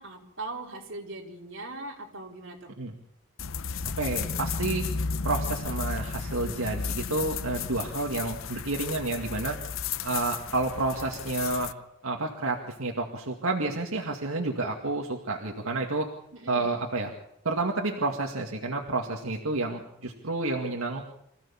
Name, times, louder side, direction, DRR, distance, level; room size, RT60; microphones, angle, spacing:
voice 1, 0.0-2.7 16.3-16.7, right 2 dB, 60° right, -1 dB, 4.4 m, -40 dB
sound 1, 3.4-11.7, left 5 dB, 70° left, 0.7 m, -33 dB
voice 2, 4.0-4.8 5.2-9.6 10.0-11.7 12.0-16.1 16.5-17.1 17.4-21.1, right 2 dB, 80° right, 1 dB, 2.1 m, -30 dB
25.5 x 15.5 x 7.2 m, 0.78 s
head